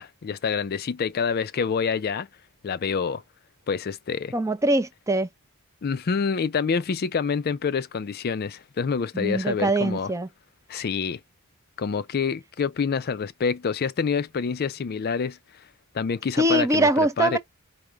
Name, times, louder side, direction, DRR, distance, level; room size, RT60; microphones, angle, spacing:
voice 1, 0.0-2.3 2.6-3.2 3.7-4.3 5.8-10.1 10.7-11.2 11.8-15.6 15.9-16.9 17.2-17.4, left 6 dB, 45° left, 0.4 m, -27 dB
voice 2, 4.3-5.3 9.1-10.3 16.4-17.4, right 1 dB, 15° right, 0.5 m, -22 dB
5.0 x 2.2 x 4.4 m
head